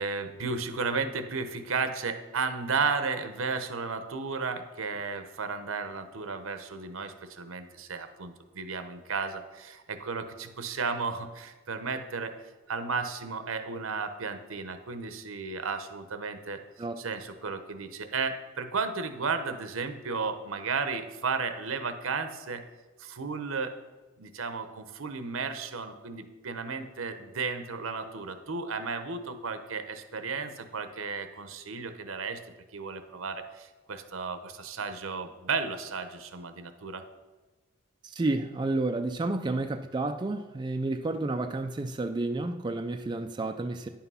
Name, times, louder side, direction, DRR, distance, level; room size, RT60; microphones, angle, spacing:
voice 1, 0.0-12.3 12.7-16.6 17.0-22.6 23.0-23.7 24.2-32.4 32.7-37.0, right 4 dB, 80° right, 9 dB, 0.9 m, -34 dB
voice 2, 38.0-43.9, right 2 dB, 20° right, 6 dB, 0.4 m, -30 dB
10.0 x 5.8 x 5.6 m, 1.2 s
head